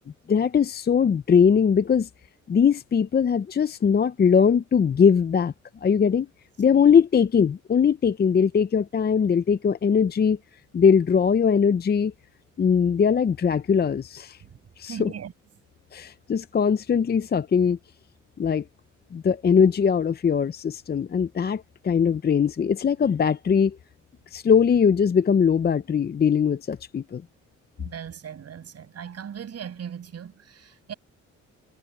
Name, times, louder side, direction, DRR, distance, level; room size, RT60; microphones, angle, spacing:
voice 1, 0.3-2.1 2.5-5.5 5.8-6.3 6.6-10.4 10.7-12.1 12.6-14.4 14.8-15.1 15.9-17.8 18.4-18.6 19.1-23.8 24.3-27.2, left 6 dB, 35° left, 0.7 m, -21 dB
voice 2, 14.8-15.3 27.8-30.9, right 8 dB, 55° right, 6.4 m, -38 dB
cardioid pair, 90°, 30 cm